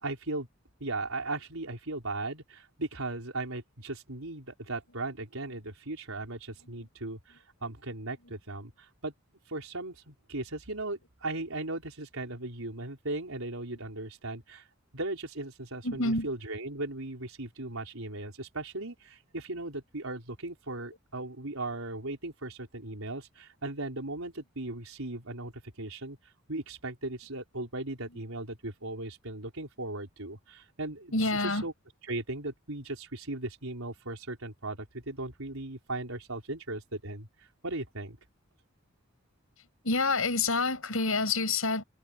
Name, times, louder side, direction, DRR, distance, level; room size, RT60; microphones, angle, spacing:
voice 1, 0.0-0.5 0.8-9.1 9.5-14.6 14.9-25.5 25.8-26.2 26.5-31.1 31.4-31.7 32.1-37.3 37.6-38.2, right 2 dB, 80° right, 4.8 m, -37 dB
voice 2, 15.8-16.3 31.1-31.7 39.8-41.8, left 3 dB, 80° left, 6.4 m, -27 dB
head